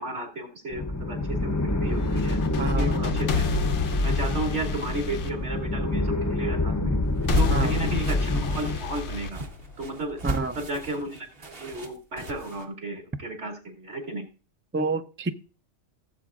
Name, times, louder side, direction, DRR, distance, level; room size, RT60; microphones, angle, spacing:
voice 1, 0.0-3.4 4.0-7.0 7.4-9.4 9.8-10.2 10.5-14.3, right 1 dB, 65° right, -1 dB, 3.0 m, -33 dB
sound 1, 0.7-8.8, left 2 dB, 20° left, 0.6 m, -27 dB
sound 2, 2.0-6.1 7.3-10.1, left 3 dB, 75° left, 1.1 m, -29 dB
voice 2, 2.6-3.1 7.5-7.7 10.2-10.6 14.7-15.3, right 3 dB, 15° right, 9 dB, 0.4 m, -28 dB
sound 3, 7.1-12.6, right 1 dB, 50° right, 1.4 m, -34 dB
16.5 x 8.2 x 2.5 m, 0.35 s
omnidirectional pair, 1.2 m